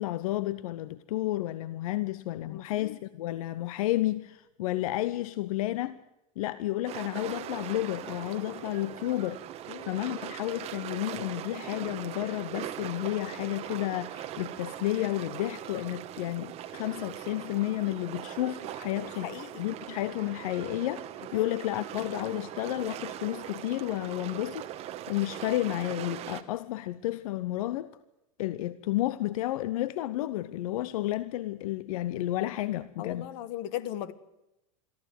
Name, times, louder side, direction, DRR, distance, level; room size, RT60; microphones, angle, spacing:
voice 1, 0.0-6.0 6.4-9.4 9.8-19.3 19.6-28.0 28.4-33.3, left 15 dB, 80° left, 0.8 m, -31 dB
voice 2, 2.5-3.0 9.7-9.9 19.2-19.7 21.3-21.5 33.0-34.1, left 12 dB, 60° left, 1.5 m, -38 dB
sound 1, 6.9-26.4, right 12 dB, 35° right, 1.3 m, -40 dB
23.5 x 14.0 x 9.3 m
supercardioid pair, 150°, 18 cm